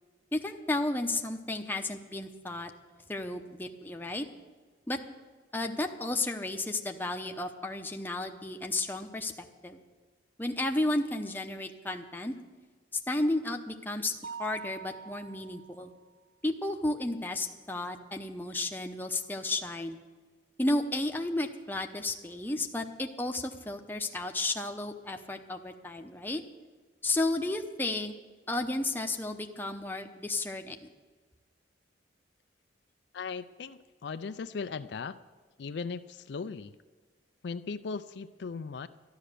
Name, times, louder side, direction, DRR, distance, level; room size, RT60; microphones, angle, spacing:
voice 1, 0.3-2.7 3.1-4.3 4.9-5.0 5.5-9.3 9.6-9.8 10.4-12.3 13.1-14.1 14.4-15.9 16.4-20.0 20.6-26.4 27.0-28.1 28.5-30.8, left 2 dB, 10° left, 4 dB, 0.8 m, -33 dB
Mallet percussion, 14.2-16.0, right 6 dB, 70° right, 0.5 m, -44 dB
voice 2, 33.1-35.2 35.6-36.7 37.4-38.9, left 5 dB, 65° left, 11 dB, 0.4 m, -38 dB
13.0 x 11.5 x 6.7 m, 1.4 s
head